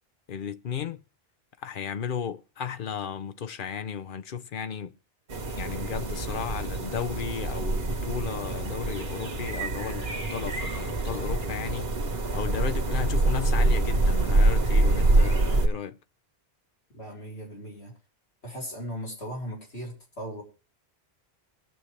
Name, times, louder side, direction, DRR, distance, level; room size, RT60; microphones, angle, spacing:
voice 1, 0.3-1.0 1.6-5.0 5.6-11.9 12.3-16.0, left 8 dB, 55° left, 0.8 m, -34 dB
sound 1, 5.3-15.7, right 2 dB, 65° right, 1.6 m, -25 dB
voice 2, 16.9-17.9 18.4-20.4, equal, 90° left, 4.4 m, -38 dB
21.5 x 7.3 x 3.3 m
omnidirectional pair, 1.1 m